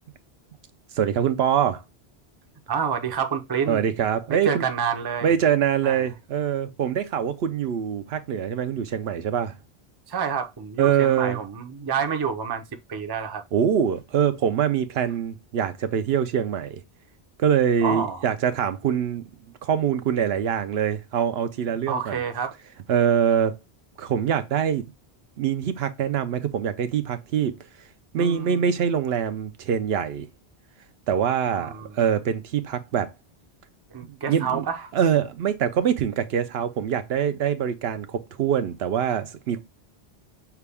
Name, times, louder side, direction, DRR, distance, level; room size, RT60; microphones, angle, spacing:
voice 1, 0.9-1.8 3.7-4.6 5.2-9.5 10.8-11.4 13.5-16.8 17.4-19.2 19.6-22.2 22.9-23.6 24.0-24.8 25.4-27.5 28.1-30.3 31.1-33.1 34.0-34.6 34.9-39.6, right 8 dB, 70° right, 0.8 m, -24 dB
voice 2, 2.7-3.8 4.3-5.3 5.8-6.1 10.1-12.6 12.9-13.4 17.8-18.2 21.9-22.5 28.2-28.6 31.5-32.0 33.9-34.9, right 7 dB, 30° right, 0.5 m, -28 dB
5.8 x 2.2 x 3.4 m
omnidirectional pair, 1.1 m